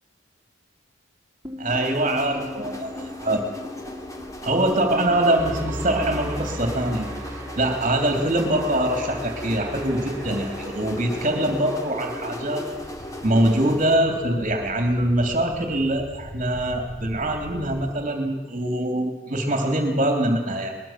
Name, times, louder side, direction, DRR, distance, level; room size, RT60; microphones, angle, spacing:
sound 1, 1.4-13.6, equal, 15° right, 3.9 m, -37 dB
voice 1, 1.6-3.4 4.4-7.1 7.5-12.6 13.2-20.7, right 1 dB, 35° right, 4 dB, 3.2 m, -23 dB
sound 2, 1.7-14.0, left 1 dB, 15° left, 2.5 m, -37 dB
sound 3, 12.7-17.9, equal, 40° left, 5.2 m, -42 dB
23.0 x 21.0 x 7.6 m, 1.2 s
head